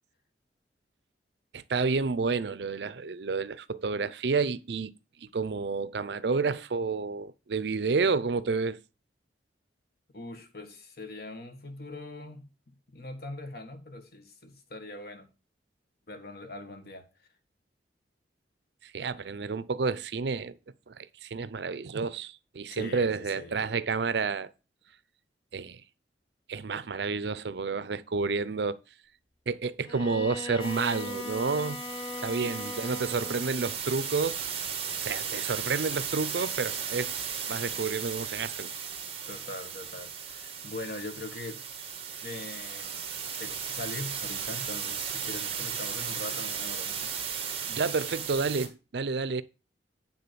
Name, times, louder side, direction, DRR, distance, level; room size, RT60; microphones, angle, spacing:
voice 1, 1.5-4.9 5.3-8.8 18.8-20.6 20.9-24.5 25.5-25.8 26.5-28.8 29.5-31.8 32.2-34.4 35.0-37.1 37.5-38.7 47.7-49.4, right 4 dB, 70° right, 0.5 m, -30 dB
voice 2, 10.1-15.3 16.1-17.3 22.7-23.6 32.4-33.2 39.2-41.6 42.2-47.1, left 2 dB, 60° left, 1.6 m, -42 dB
Bowed string instrument, 29.8-33.6, left 3 dB, 25° left, 0.5 m, -39 dB
sound 1, 30.6-48.7, right 7 dB, 35° right, 1.5 m, -36 dB
9.3 x 3.9 x 6.8 m
head